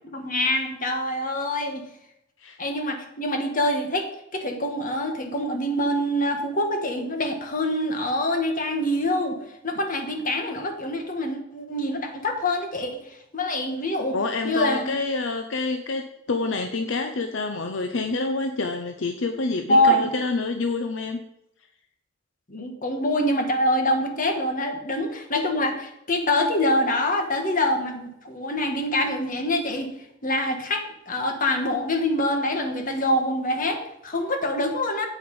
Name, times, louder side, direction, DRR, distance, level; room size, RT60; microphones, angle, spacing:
voice 1, 0.0-1.8 2.6-9.4 9.6-14.2 14.4-15.0 19.7-20.1 22.5-29.9 30.2-35.1, left 1 dB, 45° left, 4 dB, 1.6 m, -25 dB
voice 2, 14.1-21.2, left 3 dB, 70° left, 6 dB, 0.7 m, -27 dB
8.6 x 7.8 x 5.4 m, 0.81 s
head